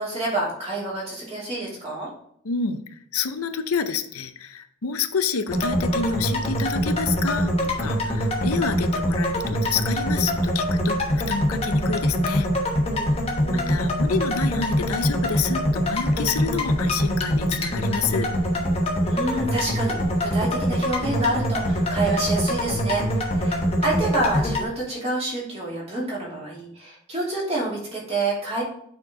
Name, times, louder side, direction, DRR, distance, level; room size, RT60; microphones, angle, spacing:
voice 1, 0.0-2.1 12.9-13.8 19.0-28.6, right 2 dB, 30° right, -6 dB, 2.8 m, -28 dB
voice 2, 2.4-2.8 3.1-12.5 13.5-18.3, left 5 dB, 90° left, 10 dB, 0.6 m, -28 dB
sound 1, 5.5-24.6, equal, 25° left, 1.2 m, -24 dB
8.6 x 4.4 x 3.8 m, 0.67 s
head